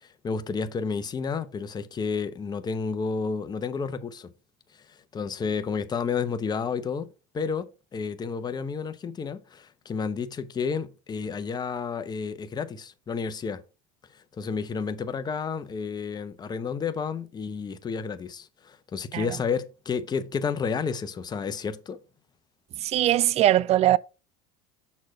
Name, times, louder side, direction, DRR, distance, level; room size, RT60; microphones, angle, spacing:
voice 1, 0.0-4.3 4.7-13.6 14.1-22.0, left 5 dB, 25° left, 0.8 m, -31 dB
voice 2, 22.8-24.0, right 13 dB, 40° right, 0.4 m, -21 dB
6.4 x 4.2 x 5.4 m
supercardioid pair, 105°, 17 cm